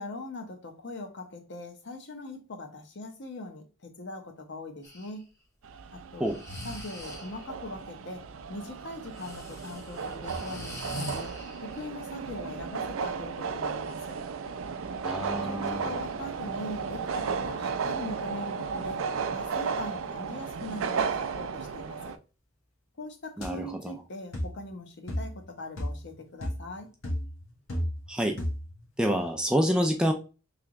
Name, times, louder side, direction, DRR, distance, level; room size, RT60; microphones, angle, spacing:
voice 1, 0.0-5.3 5.9-6.3 6.6-11.3 11.6-14.2 15.4-19.0 19.3-22.1 23.0-26.9, left 2 dB, 60° left, 0.8 m, -41 dB
Breathing, 4.8-5.1 6.2-7.5 9.2-11.9, equal, 15° left, 0.9 m, -41 dB
sound 1, 5.6-22.2, right 5 dB, 70° right, 0.4 m, -34 dB
voice 2, 15.0-15.9 23.4-23.9 28.1-28.4 29.0-30.1, equal, 5° right, 0.4 m, -27 dB
sound 2, 23.4-23.6 24.3-24.6 25.1-25.4 25.8-26.1 26.4-26.7 27.0-28.1 28.4-28.8, equal, 85° left, 1.3 m, -33 dB
3.3 x 3.0 x 3.6 m
head